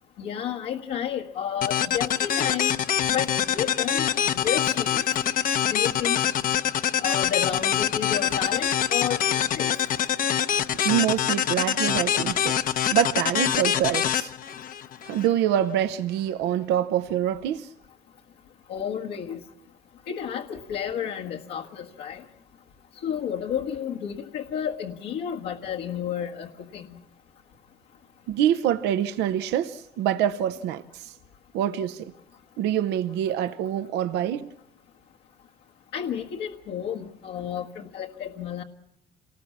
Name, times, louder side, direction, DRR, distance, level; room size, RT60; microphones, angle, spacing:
voice 1, 0.2-2.8 3.1-5.0 5.7-6.2 7.0-9.7 18.7-19.4 20.1-22.2 23.0-27.0 35.9-38.6, left 9 dB, 80° left, 1.6 m, -31 dB
sound 1, 1.6-15.3, left 9 dB, 55° left, 0.8 m, -25 dB
voice 2, 10.8-12.6 12.9-14.3 15.0-17.7 28.3-31.1 31.5-32.1 32.6-34.5, right 10 dB, 85° right, 0.8 m, -25 dB
27.5 x 19.5 x 7.3 m
cardioid pair, 110°, 17 cm